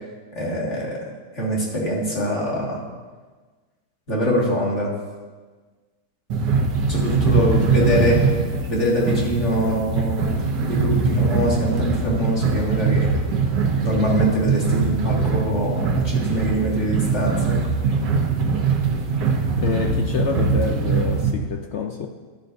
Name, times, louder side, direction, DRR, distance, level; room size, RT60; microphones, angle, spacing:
voice 1, 0.3-1.0 1.4-2.8 4.1-4.9 6.9-8.2 8.7-13.1 13.8-17.6, equal, 45° left, -5 dB, 2.3 m, -23 dB
sound 1, 6.3-21.3, right 4 dB, 90° right, 1.6 m, -22 dB
voice 2, 7.7-8.2 19.6-22.1, left 6 dB, 65° left, 3 dB, 0.7 m, -27 dB
13.5 x 11.0 x 2.6 m, 1.4 s
omnidirectional pair, 1.8 m